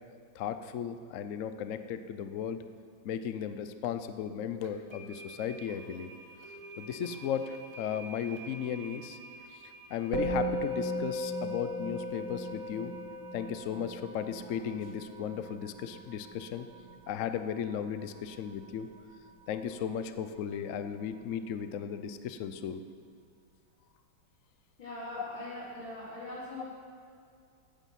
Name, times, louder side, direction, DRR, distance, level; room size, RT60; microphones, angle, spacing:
voice 1, 0.3-2.6 3.0-6.1 6.8-9.2 9.5-12.9 13.3-16.7 17.1-18.9 19.5-22.8 25.1-25.3, left 8 dB, 90° left, 10 dB, 0.6 m, -36 dB
sound 1, 4.6-13.5, right 2 dB, 15° right, 1.2 m, -50 dB
Musical instrument, 10.1-19.7, equal, 65° right, 1.9 m, -38 dB
voice 2, 24.8-26.7, left 1 dB, 70° left, -7 dB, 4.4 m, -41 dB
14.5 x 9.0 x 5.9 m, 2.3 s
omnidirectional pair, 2.2 m